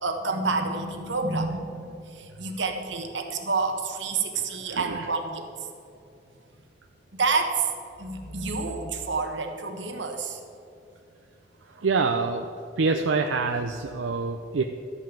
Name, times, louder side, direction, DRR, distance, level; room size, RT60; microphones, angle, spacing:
voice 1, 0.0-5.7 7.1-7.7 8.0-10.4, right 4 dB, 75° right, 4 dB, 1.2 m, -29 dB
voice 2, 4.7-5.1 11.7-12.5 12.8-14.6, right 4 dB, 90° right, 4 dB, 0.6 m, -26 dB
13.0 x 5.5 x 7.4 m, 2.5 s
head